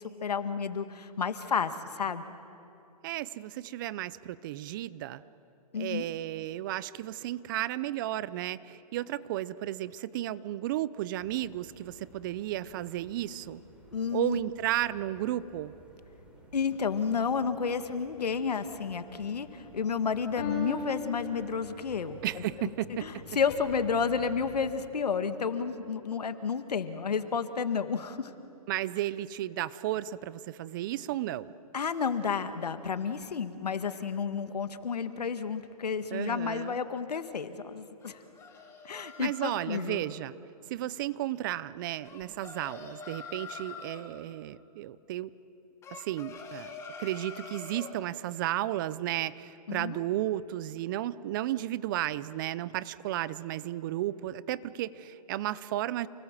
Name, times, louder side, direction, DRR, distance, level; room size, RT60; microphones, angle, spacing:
voice 1, 0.0-2.2 5.7-6.1 13.9-14.4 16.5-22.4 23.0-28.3 31.7-38.2 38.8-40.0 49.7-50.0, left 6 dB, 85° left, 10 dB, 1.7 m, -31 dB
voice 2, 3.0-5.2 5.7-13.6 14.1-15.7 22.2-23.2 28.7-31.5 36.1-36.8 39.2-40.3 40.7-45.3 45.9-46.7 47.0-56.1, right 14 dB, 30° right, 18 dB, 0.6 m, -33 dB
sound 1, 11.2-24.7, right 1 dB, 5° right, 3.8 m, -53 dB
sound 2, 18.3-19.0 20.4-22.0 23.5-23.6, left 5 dB, 35° left, 5.1 m, -39 dB
sound 3, 38.0-40.0 42.0-44.1 45.8-48.0, left 4 dB, 15° left, 2.3 m, -45 dB
29.0 x 19.5 x 7.5 m, 2.7 s
hypercardioid pair, 150°, 20 cm